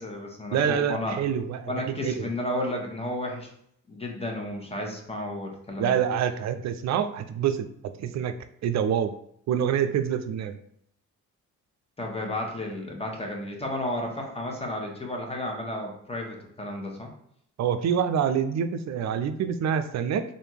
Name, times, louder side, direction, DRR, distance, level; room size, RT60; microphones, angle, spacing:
voice 1, 0.0-1.2 1.7-3.5 3.9-6.0 12.0-17.1, left 1 dB, 20° left, 1 dB, 1.3 m, -32 dB
voice 2, 0.5-2.3 5.8-8.3 8.6-9.1 9.5-10.6 17.6-20.2, right 8 dB, 60° right, 10 dB, 0.5 m, -26 dB
3.4 x 2.7 x 4.5 m, 0.70 s
supercardioid pair, 65°, 31 cm